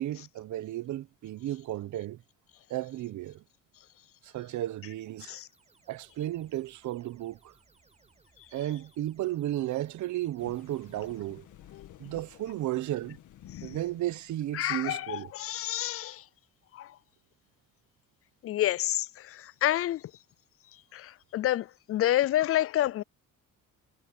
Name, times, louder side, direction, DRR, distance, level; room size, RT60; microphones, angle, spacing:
voice 1, 0.0-2.2 2.7-3.4 4.2-5.4 5.9-7.5 8.5-11.5 12.0-13.2 13.6-15.3, right 14 dB, 70° right, 1.0 m, -34 dB
sound 1, 5.2-12.0, right 4 dB, 20° right, 5.4 m, -65 dB
sound 2, 10.4-15.9, left 12 dB, 70° left, 1.9 m, -52 dB
voice 2, 14.5-16.2 16.7-16.9 18.4-20.0 20.9-23.0, left 13 dB, 45° left, 0.4 m, -29 dB
cardioid pair, 135°, 31 cm